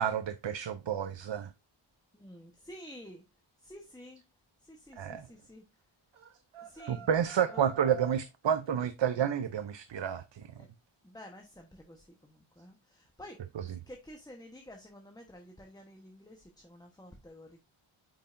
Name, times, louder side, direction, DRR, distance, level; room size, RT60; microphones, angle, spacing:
voice 1, 0.0-1.5 5.0-5.3 6.9-10.5 13.6-13.7, right 8 dB, 60° right, 0.6 m, -30 dB
voice 2, 2.1-3.2 3.6-4.2 4.6-5.6 6.6-7.1 7.5-7.7 10.6-10.7 11.0-17.6, left 1 dB, 10° left, 1.1 m, -51 dB
sound 1, 6.1-8.3, right 7 dB, 80° right, 1.1 m, -49 dB
8.7 x 5.5 x 2.6 m
wide cardioid pair, 105°, 49 cm